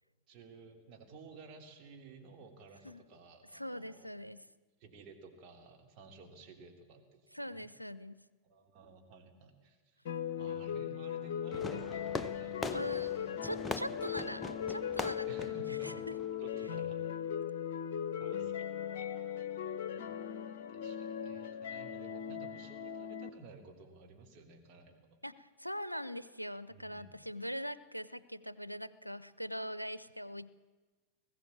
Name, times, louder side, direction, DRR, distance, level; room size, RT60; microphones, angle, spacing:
voice 1, 0.3-4.1 4.8-7.7 8.4-10.0 10.4-13.0 13.9-14.5 15.2-16.0 16.4-17.0 18.2-18.5 19.0-19.1 19.9-25.2 26.7-27.2, right 3 dB, 40° right, 3 dB, 3.1 m, -54 dB
voice 2, 3.5-4.5 7.3-8.2 12.7-16.2 25.2-30.5, equal, 90° left, 18 dB, 0.6 m, -42 dB
sound 1, 10.0-23.3, left 9 dB, 55° left, 1.0 m, -38 dB
Fireworks, 11.5-16.5, left 3 dB, 15° left, 0.7 m, -42 dB
20.0 x 15.0 x 8.6 m, 1.3 s
figure-of-eight pair, 90°, 0 cm